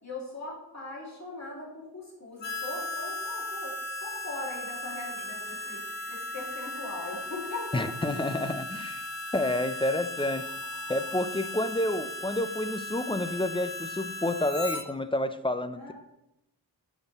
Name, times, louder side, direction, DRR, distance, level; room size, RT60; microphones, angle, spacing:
voice 1, 0.0-5.8 6.1-7.8 15.8-15.9, left 2 dB, 40° left, -4 dB, 2.5 m, -40 dB
Harmonica, 2.4-14.8, left 1 dB, 80° left, 0.9 m, -37 dB
sound 1, 4.9-12.5, right 4 dB, 75° right, 1.1 m, -56 dB
voice 2, 7.7-9.1 9.3-10.5 10.9-15.9, left 1 dB, 15° left, 11 dB, 0.3 m, -29 dB
7.1 x 5.3 x 4.0 m, 0.88 s
wide cardioid pair, 70°, 43 cm